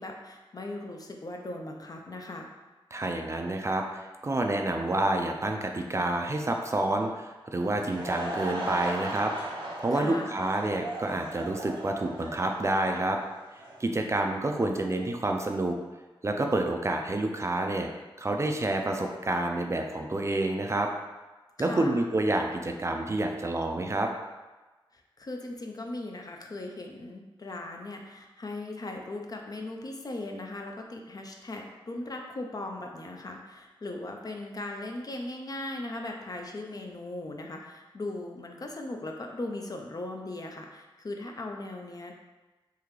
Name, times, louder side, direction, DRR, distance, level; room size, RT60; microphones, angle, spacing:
voice 1, 0.0-2.5 9.9-10.5 21.6-22.0 24.9-42.1, left 2 dB, 45° left, 2 dB, 0.5 m, -38 dB
voice 2, 2.9-9.3 9.8-13.2 13.8-15.8 16.2-17.9 18.2-20.9 21.6-24.1, right 2 dB, 30° right, 3 dB, 0.4 m, -28 dB
Laughter / Crowd, 7.7-13.9, right 1 dB, 75° right, 0.8 m, -37 dB
3.7 x 2.8 x 3.0 m, 1.2 s
wide cardioid pair, 70°, 9 cm